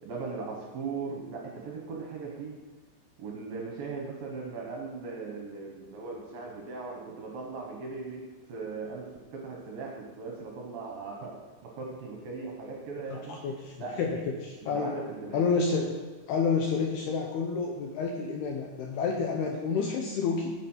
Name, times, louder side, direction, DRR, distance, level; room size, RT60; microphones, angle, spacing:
voice 1, 0.0-2.6 3.2-8.2 8.5-9.1 9.3-11.4 11.6-13.4 13.8-14.2 14.6-15.4, right 4 dB, 65° right, -1 dB, 2.5 m, -38 dB
voice 2, 13.1-15.0 15.3-16.0 16.3-20.5, left 5 dB, 75° left, 1 dB, 2.4 m, -29 dB
9.3 x 7.9 x 5.7 m, 1.4 s
omnidirectional pair, 5.4 m